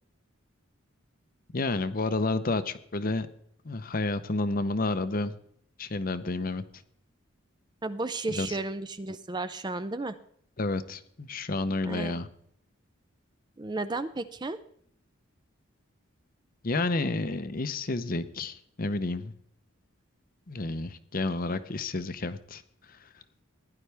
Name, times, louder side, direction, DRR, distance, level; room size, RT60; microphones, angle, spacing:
voice 1, 1.5-3.3 3.6-5.3 5.8-6.6 8.4-8.6 10.6-12.3 16.6-19.3 20.5-22.6 22.9-23.1, left 2 dB, 45° left, 12 dB, 0.7 m, -30 dB
voice 2, 7.8-10.2 11.8-12.2 13.6-14.6, right 2 dB, 20° right, 12 dB, 0.5 m, -33 dB
15.5 x 10.5 x 3.4 m, 0.67 s
head